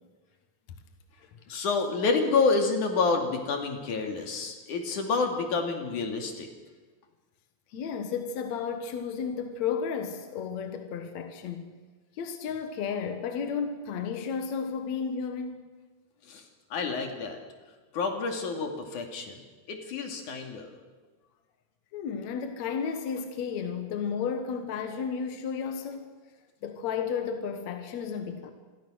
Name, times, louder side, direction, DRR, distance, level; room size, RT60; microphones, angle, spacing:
voice 1, 1.5-6.5 16.3-16.4 16.7-17.4 17.9-19.4 19.7-20.7, left 4 dB, 85° left, 4.1 m, -28 dB
voice 2, 7.7-11.6 12.1-15.7 21.9-26.1 26.6-28.5, left 6 dB, 70° left, 2.7 m, -33 dB
27.5 x 22.5 x 6.4 m
omnidirectional pair, 3.4 m